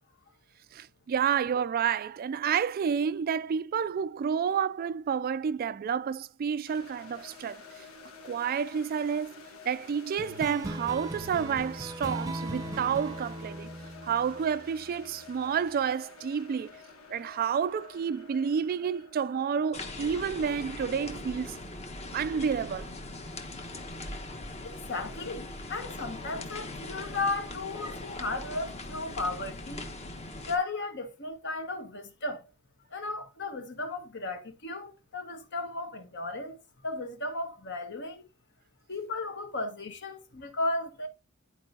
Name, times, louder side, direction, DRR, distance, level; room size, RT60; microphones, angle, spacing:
voice 1, 0.7-7.6 8.2-9.3 9.7-13.7 14.0-16.7 17.1-21.6 22.1-22.9, right 7 dB, 45° right, 0.3 m, -30 dB
sound 1, 6.7-23.5, left 4 dB, 85° left, 1.4 m, -51 dB
sound 2, 10.2-15.1, right 1 dB, 15° right, 0.7 m, -38 dB
sound 3, 19.7-30.6, left 2 dB, 30° left, 1.1 m, -40 dB
voice 2, 24.6-29.9 30.5-32.5 32.9-36.6 36.8-38.2 38.9-41.1, left 2 dB, 60° left, 1.5 m, -35 dB
11.0 x 4.6 x 2.7 m
head